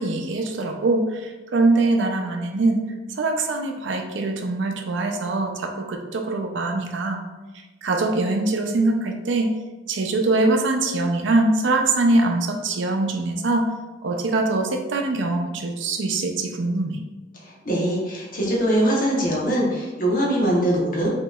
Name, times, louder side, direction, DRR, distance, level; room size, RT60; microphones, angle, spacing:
voice 1, 0.0-2.8 3.2-7.2 7.8-9.5 9.9-13.7 14.0-17.0, right 2 dB, 80° right, 4 dB, 0.5 m, -23 dB
voice 2, 17.6-21.1, right 1 dB, 45° left, -3 dB, 0.9 m, -22 dB
4.9 x 2.9 x 2.3 m, 1.2 s
head